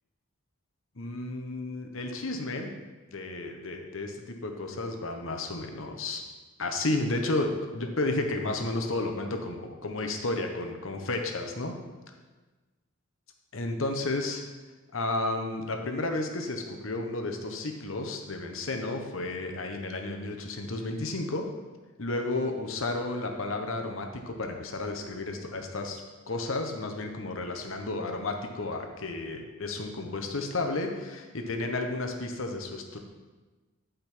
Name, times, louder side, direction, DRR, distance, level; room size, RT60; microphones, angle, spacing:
voice 1, 0.9-2.8 3.1-6.2 6.6-11.7 13.5-14.4 14.9-21.5 22.0-26.0 26.3-33.0, left 2 dB, 65° left, 4 dB, 1.0 m, -32 dB
10.5 x 5.2 x 4.5 m, 1.3 s
head